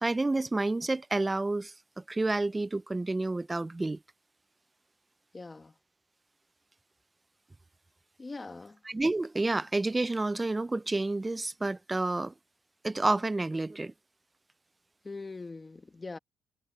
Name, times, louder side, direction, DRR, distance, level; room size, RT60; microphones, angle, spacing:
voice 1, 0.0-4.0 8.9-12.3 12.8-13.9, right 2 dB, 15° right, 0.3 m, -29 dB
voice 2, 5.3-5.7 8.2-8.8 15.0-16.2, left 3 dB, 20° left, 1.5 m, -42 dB
cardioid pair, 125°, 0 cm